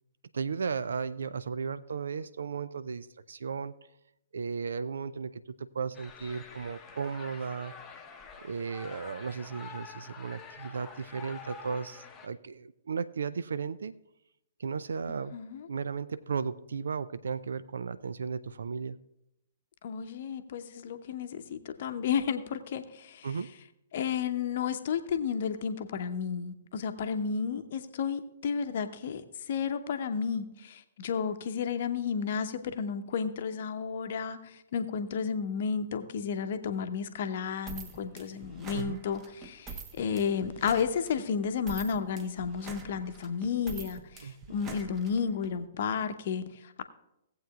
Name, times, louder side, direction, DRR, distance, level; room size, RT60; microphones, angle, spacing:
voice 1, 0.3-3.8 4.3-7.7 8.4-13.9 14.6-15.4 15.7-19.0 23.2-23.6 38.7-39.0 44.2-44.4, right 5 dB, 70° right, 14 dB, 0.4 m, -35 dB
sound 1, 5.9-12.3, left 5 dB, 20° left, 0.9 m, -47 dB
voice 2, 15.3-15.7 19.8-23.3 23.9-29.2 29.5-46.8, left 6 dB, 55° left, 9 dB, 0.8 m, -32 dB
sound 2, 37.7-45.5, right 4 dB, 25° right, 1.1 m, -45 dB
17.5 x 8.0 x 2.3 m, 0.85 s
figure-of-eight pair, 115°, 0 cm